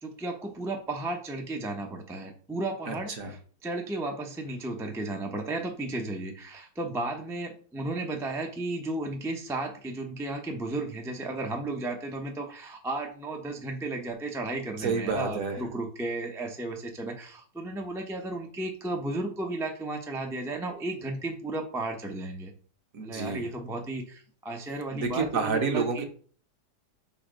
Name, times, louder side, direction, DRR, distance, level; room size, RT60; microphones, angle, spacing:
voice 1, 0.0-22.5 23.0-26.0, right 2 dB, 5° right, 2 dB, 0.4 m, -34 dB
voice 2, 2.9-3.3 14.8-15.6 22.9-23.5 24.9-26.0, right 4 dB, 55° right, 4 dB, 1.3 m, -29 dB
5.3 x 4.2 x 5.1 m, 0.44 s
omnidirectional pair, 1.9 m